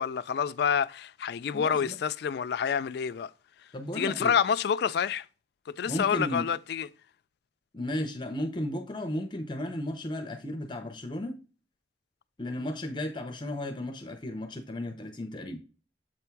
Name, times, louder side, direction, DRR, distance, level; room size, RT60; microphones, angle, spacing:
voice 1, 0.0-3.3 3.9-5.3 5.7-6.9, left 7 dB, 60° left, 0.3 m, -28 dB
voice 2, 1.5-1.9 3.7-4.3 5.9-6.5 7.7-11.3 12.4-15.6, left 1 dB, 25° left, 0.6 m, -34 dB
7.5 x 3.5 x 4.5 m
head